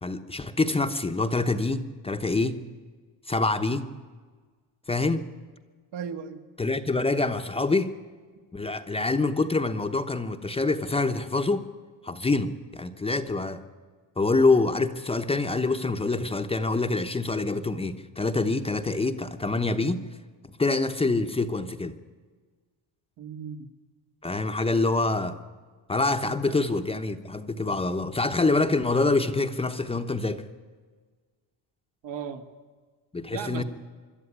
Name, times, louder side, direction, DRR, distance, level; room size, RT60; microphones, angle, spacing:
voice 1, 0.0-2.6 3.3-3.9 4.9-5.2 6.6-7.9 8.5-11.7 12.0-13.6 14.2-20.0 20.6-21.9 24.2-25.4 25.9-30.4 33.1-33.6, left 3 dB, 15° left, 7 dB, 0.8 m, -26 dB
voice 2, 5.9-6.4 23.2-23.7 26.2-26.6 32.0-32.4 33.3-33.6, right 7 dB, 70° right, 6 dB, 2.0 m, -36 dB
25.5 x 12.5 x 9.9 m, 1.5 s
cardioid pair, 135°, 44 cm